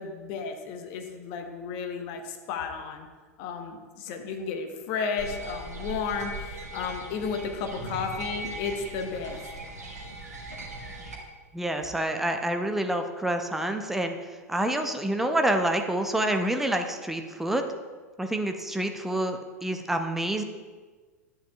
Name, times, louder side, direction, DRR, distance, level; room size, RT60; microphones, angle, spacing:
voice 1, 0.0-3.1 3.4-9.4, left 5 dB, 45° left, 5 dB, 1.0 m, -33 dB
sound 1, 5.2-11.2, right 1 dB, 75° right, 1.5 m, -39 dB
voice 2, 11.5-14.2 14.5-17.6 18.2-20.4, right 1 dB, 5° right, 5 dB, 0.6 m, -27 dB
11.0 x 9.1 x 2.3 m, 1.4 s
figure-of-eight pair, 90°, 9 cm